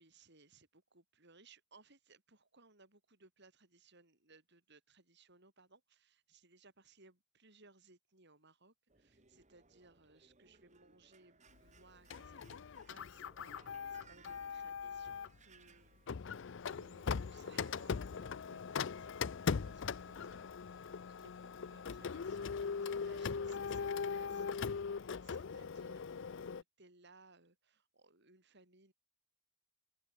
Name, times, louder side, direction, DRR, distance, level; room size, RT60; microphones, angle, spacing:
voice 1, 0.0-28.9, right 3 dB, 60° right, 7.8 m, -64 dB
sound 1, 8.9-16.1, right 4 dB, 35° right, 4.5 m, -65 dB
Printer, 12.1-15.4 16.1-26.6, left 5 dB, 65° left, 0.5 m, -40 dB
open air
head